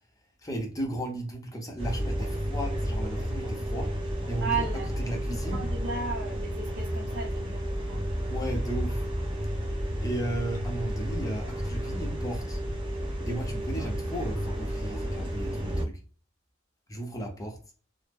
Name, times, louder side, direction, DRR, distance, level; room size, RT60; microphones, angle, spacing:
voice 1, 0.4-4.7 5.0-5.7 8.3-9.0 10.0-12.6 13.3-16.0 16.9-17.6, right 1 dB, 15° left, 0.7 m, -35 dB
sound 1, 1.8-15.8, equal, 25° right, 0.9 m, -31 dB
voice 2, 4.4-5.0 5.3-8.1 13.7-13.9, right 4 dB, 60° right, 0.8 m, -35 dB
2.9 x 2.0 x 3.4 m
head